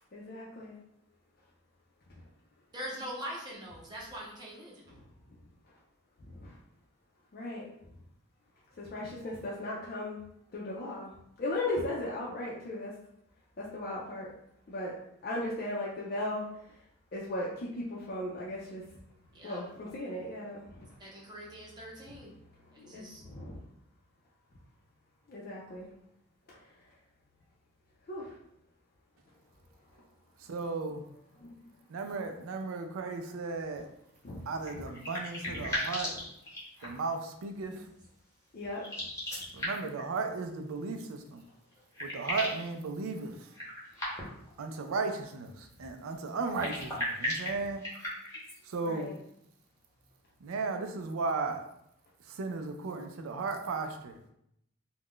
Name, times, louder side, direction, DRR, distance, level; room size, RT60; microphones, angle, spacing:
voice 1, 0.1-0.8 6.3-6.5 7.3-7.7 8.8-10.2 10.5-11.1 11.4-12.9 13.6-14.3 14.7-14.9 15.2-16.4 17.1-18.8 19.4-20.9 22.8-23.6 25.3-25.9 28.1-28.3 31.4-31.5 34.2-34.4 35.5-35.7 38.5-38.8 48.8-49.1, left 1 dB, 45° left, -5 dB, 0.4 m, -37 dB
voice 2, 2.7-4.9 19.3-19.6 21.0-22.3 22.7-23.2, equal, 20° right, -4 dB, 0.6 m, -43 dB
voice 3, 30.4-31.0 31.9-33.9 34.5-36.2 36.8-37.9 39.5-41.4 42.0-43.5 44.6-47.8 48.6-49.1 50.4-51.6 52.3-54.2, right 4 dB, 80° right, 6 dB, 0.4 m, -35 dB
sound 1, 34.6-37.1 38.7-40.0 41.4-41.5 41.7-42.7 43.5-44.5 46.4-48.6, left 1 dB, 15° left, 0.7 m, -37 dB
2.4 x 2.1 x 3.6 m, 0.75 s
head